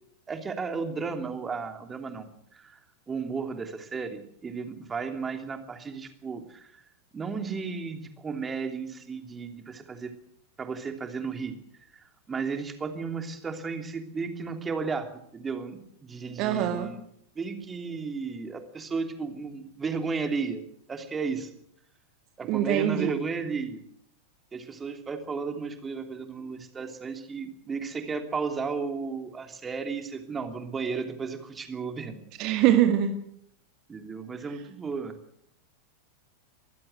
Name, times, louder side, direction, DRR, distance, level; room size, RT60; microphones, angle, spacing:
voice 1, 0.3-2.8 3.1-6.8 7.1-10.1 10.6-11.6 11.9-17.0 17.3-20.6 20.9-21.5 22.4-23.8 24.5-32.2 33.9-35.1, right 5 dB, 15° right, 7 dB, 3.0 m, -34 dB
voice 2, 16.4-16.9 22.5-23.1 32.4-33.1, right 11 dB, 40° right, 7 dB, 1.9 m, -23 dB
23.0 x 15.5 x 7.9 m, 0.68 s
figure-of-eight pair, 90°, 0 cm